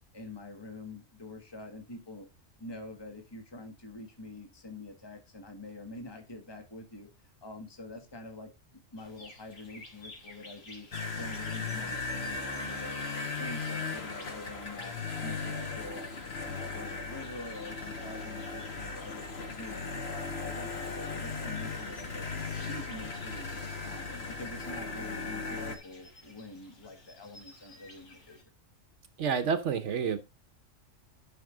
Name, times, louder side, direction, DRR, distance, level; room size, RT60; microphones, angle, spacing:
voice 1, 0.1-2.3 2.6-10.9 11.2-16.1 16.4-19.2 19.6-22.3 22.5-23.5 23.8-28.4, left 2 dB, 20° left, 4 dB, 1.6 m, -46 dB
sound 1, 9.0-28.4, left 2 dB, 85° left, 2.7 m, -54 dB
sound 2, 10.9-25.8, left 4 dB, 55° left, 1.7 m, -37 dB
voice 2, 29.2-30.2, right 6 dB, 70° right, 10 dB, 1.1 m, -29 dB
11.0 x 6.0 x 3.8 m, 0.24 s
omnidirectional pair, 1.3 m